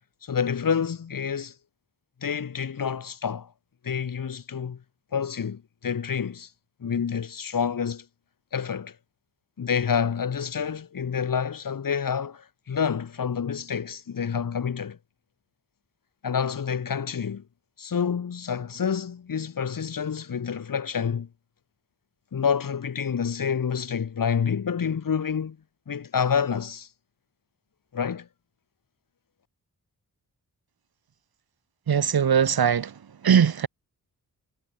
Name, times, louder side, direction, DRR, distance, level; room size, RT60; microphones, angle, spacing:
voice 1, 0.2-1.5 2.2-3.5 3.8-4.8 5.1-6.5 6.8-8.0 8.5-9.0 9.6-15.0 16.2-17.4 17.8-21.3 22.3-25.6 25.9-26.9 27.9-28.3, left 7 dB, 60° left, 2.8 m, -28 dB
voice 2, 31.9-32.9 33.2-33.7, right 7 dB, 75° right, 4.4 m, -20 dB
wide cardioid pair, 95°, 37 cm